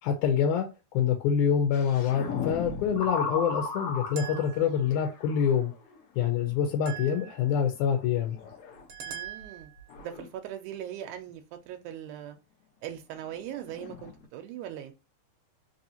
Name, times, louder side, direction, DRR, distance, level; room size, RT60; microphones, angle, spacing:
voice 1, 0.0-5.7 6.2-8.4, left 8 dB, 90° left, 2.1 m, -26 dB
sound 1, 1.7-6.0 6.4-6.6 8.0-8.8 9.2-10.3 13.2-13.3 13.5-14.2, left 4 dB, 65° left, 1.5 m, -36 dB
sound 2, 4.2-5.0 6.9-7.6 8.9-9.9, right 9 dB, 70° right, 1.4 m, -42 dB
voice 2, 9.1-9.7 10.0-12.4 12.8-14.9, right 10 dB, 85° right, 2.0 m, -40 dB
4.8 x 2.7 x 2.7 m
omnidirectional pair, 3.5 m